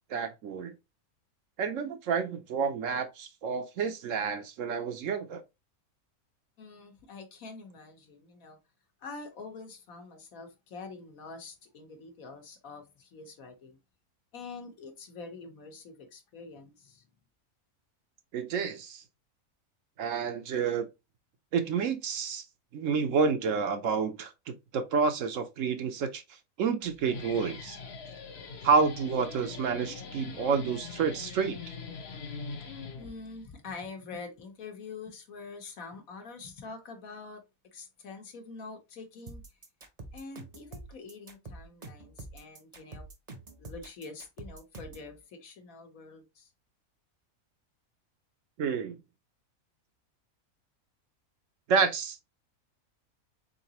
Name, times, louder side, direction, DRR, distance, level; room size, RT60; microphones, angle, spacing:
voice 1, 0.1-0.7 1.6-5.4 18.3-19.0 20.0-20.9 21.5-22.4 22.7-26.2 26.6-27.8 28.6-31.6 48.6-49.0 51.7-52.2, right 5 dB, 70° right, 1.0 m, -29 dB
voice 2, 6.6-8.6 9.0-13.8 14.3-17.1 33.0-37.4 37.7-39.4 40.1-43.0 43.6-46.5, left 4 dB, 75° left, 1.4 m, -45 dB
Guitar, 26.8-33.4, left 5 dB, 55° left, 1.0 m, -42 dB
sound 1, 39.3-45.1, right 2 dB, 35° right, 0.8 m, -46 dB
3.9 x 3.8 x 2.8 m
omnidirectional pair, 1.5 m